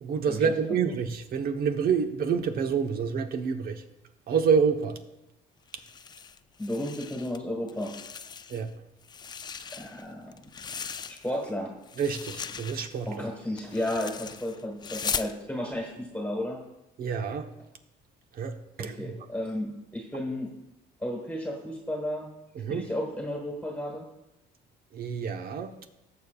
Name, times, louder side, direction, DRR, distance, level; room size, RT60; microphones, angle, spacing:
voice 1, 0.0-3.8 4.3-5.0 8.5-8.7 12.0-13.1 17.0-17.5 18.4-19.1 22.5-22.8 24.9-25.7, right 6 dB, 60° right, 6 dB, 1.1 m, -28 dB
sound 1, 5.7-7.4 7.7-8.7 9.0-11.5 11.8-15.3, left 6 dB, 25° left, 0.4 m, -38 dB
voice 2, 6.6-7.9 9.7-10.4 11.1-11.7 13.1-16.6 18.8-20.5 21.0-22.3 22.7-24.1, left 1 dB, 10° left, 0 dB, 1.6 m, -33 dB
19.0 x 7.1 x 2.4 m, 0.91 s
cardioid pair, 110°, 17 cm